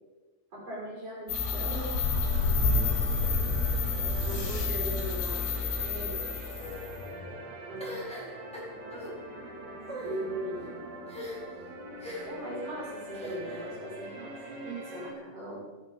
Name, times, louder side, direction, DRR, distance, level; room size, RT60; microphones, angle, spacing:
voice 1, 0.5-2.0 4.2-5.5 5.8-6.5 7.7-7.9 10.0-10.8 12.3-14.3 14.6-15.6, right 1 dB, 35° right, -4 dB, 5.8 m, -39 dB
sound 1, 1.3-7.1, left 4 dB, 80° left, 5.9 m, -29 dB
sound 2, 1.4-15.1, right 1 dB, 65° right, 5.5 m, -44 dB
voice 2, 2.5-3.5 6.5-7.5, left 4 dB, 60° left, -4 dB, 8.9 m, -43 dB
sound 3, 7.8-9.1 9.8-10.2 11.1-11.6 12.0-12.4 13.1-13.7, left 1 dB, ahead, 3.4 m, -41 dB
25.5 x 9.8 x 5.3 m, 1.2 s
omnidirectional pair, 5.0 m